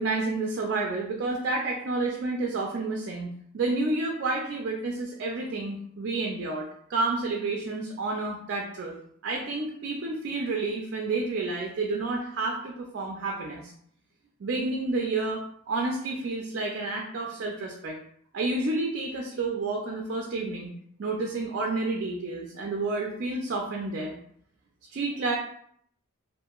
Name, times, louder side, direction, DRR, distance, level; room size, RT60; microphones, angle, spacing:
voice 1, 0.0-8.9 9.2-13.7 14.4-18.0 18.3-20.7 21.0-24.2 24.9-25.3, right 3 dB, 50° right, 0 dB, 0.3 m, -30 dB
2.7 x 2.4 x 2.2 m, 0.66 s
head